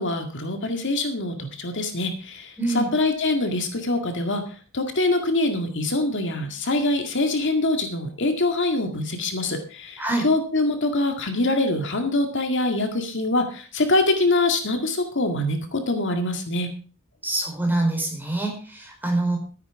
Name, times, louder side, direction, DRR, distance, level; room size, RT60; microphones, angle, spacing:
voice 1, 0.0-16.7, left 2 dB, 60° left, 5 dB, 2.0 m, -24 dB
voice 2, 2.6-2.9 10.0-10.3 17.2-19.4, right 2 dB, 10° right, 1 dB, 4.4 m, -25 dB
13.5 x 9.6 x 4.8 m, 0.38 s
head